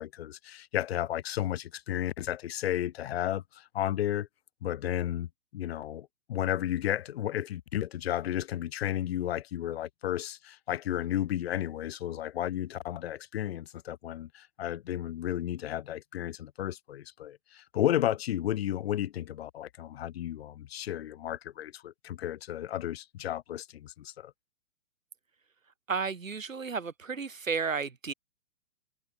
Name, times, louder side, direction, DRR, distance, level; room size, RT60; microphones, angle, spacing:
voice 1, 0.0-4.3 4.6-24.3, left 12 dB, 50° left, 4.3 m, -33 dB
voice 2, 25.9-28.1, right 5 dB, 90° right, 1.6 m, -32 dB
figure-of-eight pair, 125°, 38 cm